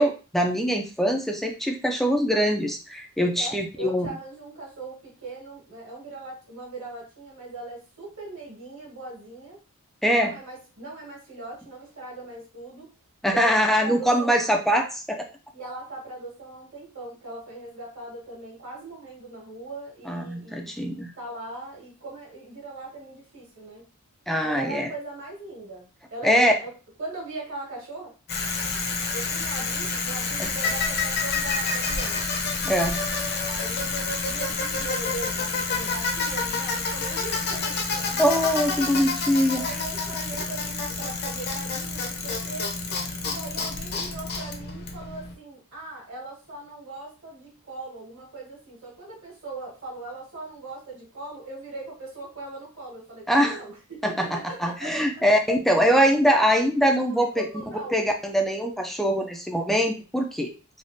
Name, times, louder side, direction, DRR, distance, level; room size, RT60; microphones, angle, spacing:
voice 1, 0.0-4.1 10.0-10.4 13.2-15.3 20.1-21.1 24.3-24.9 26.2-26.5 30.4-30.5 32.6-33.0 38.2-39.6 53.3-53.6 54.0-57.5 57.9-60.5, equal, ahead, 3 dB, 0.3 m, -23 dB
voice 2, 3.2-9.6 10.1-12.9 13.2-14.3 15.5-23.8 24.4-26.7 27.0-28.1 29.1-32.2 33.4-38.3 39.6-42.7 43.2-55.2 57.2-58.0, right 2 dB, 60° right, -4 dB, 1.6 m, -39 dB
Bicycle, 28.3-45.3, left 4 dB, 45° left, 0.6 m, -28 dB
3.4 x 2.3 x 2.5 m, 0.34 s
head